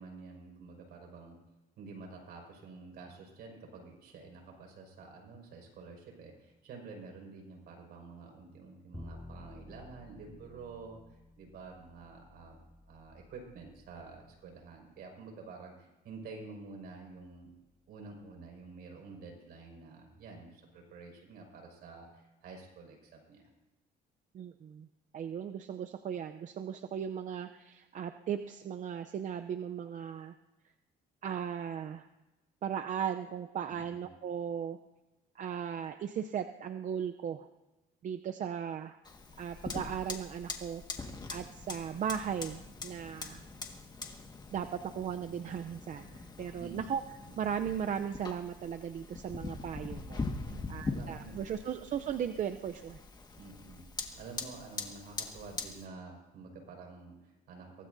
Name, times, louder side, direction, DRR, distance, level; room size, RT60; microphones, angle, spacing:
voice 1, 0.0-1.4 1.8-12.6 12.9-17.5 17.9-23.5 33.7-34.1 46.6-46.9 47.2-47.4 50.4-51.5 53.3-53.8 54.2-57.9, right 4 dB, 70° right, 1 dB, 5.5 m, -49 dB
Bowed string instrument, 8.9-15.1, left 1 dB, ahead, 0.6 m, -53 dB
voice 2, 24.3-24.9 25.1-30.3 31.2-32.1 32.6-34.8 35.4-37.5 38.0-39.0 39.4-43.4 44.5-47.0 47.4-50.2 50.7-53.0, right 8 dB, 50° right, 8 dB, 0.6 m, -37 dB
Fire, 39.0-55.9, left 3 dB, 25° left, 1.7 m, -43 dB
23.5 x 17.5 x 2.7 m, 1.1 s
cardioid pair, 110°, 17 cm